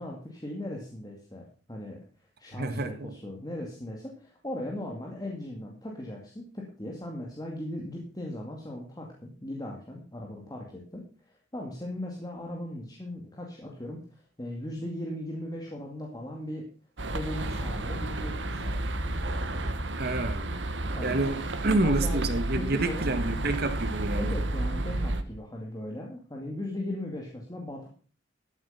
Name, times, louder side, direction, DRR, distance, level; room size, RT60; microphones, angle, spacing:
voice 1, 0.0-2.0 2.4-16.6 17.1-18.8 21.0-21.2 21.7-23.0 24.2-27.9, left 1 dB, 20° left, -1 dB, 2.2 m, -38 dB
voice 2, 2.5-3.1 20.0-20.6 21.0-24.4, right 2 dB, 60° right, 9 dB, 1.7 m, -28 dB
sound 1, 17.0-25.2, right 1 dB, 80° right, 1.4 m, -31 dB
13.0 x 8.0 x 5.6 m, 0.40 s
head